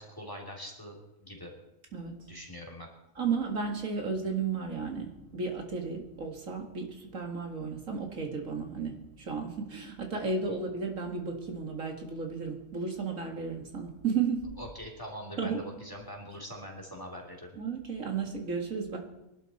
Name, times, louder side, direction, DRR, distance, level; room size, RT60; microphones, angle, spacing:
voice 1, 0.0-1.5 2.3-2.9 10.5-10.6 14.6-17.6, equal, 15° left, 0 dB, 3.0 m, -43 dB
voice 2, 3.2-14.5 15.4-15.6 17.6-19.0, right 5 dB, 75° right, 3 dB, 2.4 m, -33 dB
23.0 x 11.5 x 4.2 m, 0.91 s
omnidirectional pair, 1.4 m